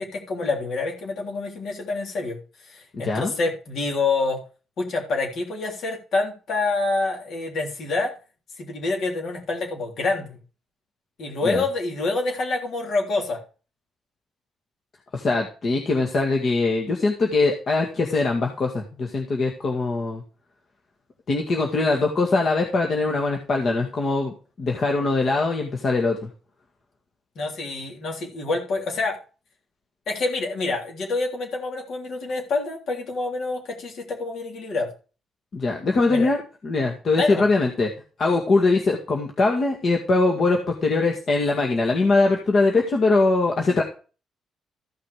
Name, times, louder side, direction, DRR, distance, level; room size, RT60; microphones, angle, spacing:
voice 1, 0.0-2.4 2.7-4.4 4.8-8.1 8.6-10.4 11.2-13.4 27.4-29.2 30.1-34.9 36.1-36.3 37.2-37.4, left 3 dB, 65° left, 1 dB, 3.5 m, -27 dB
voice 2, 2.9-3.3 11.4-11.6 15.1-20.2 21.3-26.3 35.5-37.9 38.2-43.8, left 3 dB, 50° left, 1 dB, 1.9 m, -22 dB
14.0 x 5.8 x 4.9 m, 0.36 s
cardioid pair, 90°, 0 cm